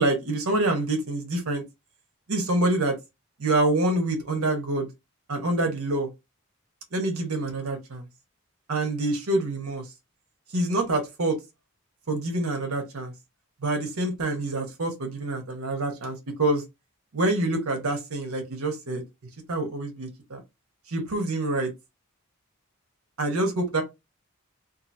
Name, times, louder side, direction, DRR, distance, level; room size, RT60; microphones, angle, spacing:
voice 1, 0.0-1.6 2.3-3.0 3.4-4.9 5.3-6.1 6.9-8.1 8.7-9.8 10.5-11.4 12.1-13.1 13.6-16.6 17.1-19.0 19.5-20.4 20.9-21.7 23.2-23.8, right 2 dB, 75° right, 1.0 m, -26 dB
2.8 x 2.6 x 2.6 m
head